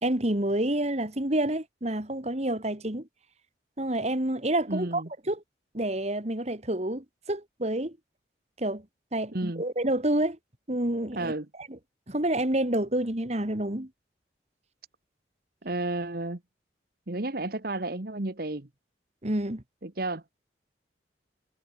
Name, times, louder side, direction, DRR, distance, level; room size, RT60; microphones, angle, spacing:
voice 1, 0.0-3.1 3.8-5.4 5.7-8.0 8.6-8.8 9.1-10.4 10.7-11.3 11.7-11.8 12.1-13.9 19.2-19.6, right 1 dB, 35° right, 2.2 m, -28 dB
voice 2, 4.7-5.1 9.3-9.6 11.1-11.5 15.6-16.4 17.1-18.7 19.8-20.2, right 2 dB, 55° right, 1.5 m, -32 dB
head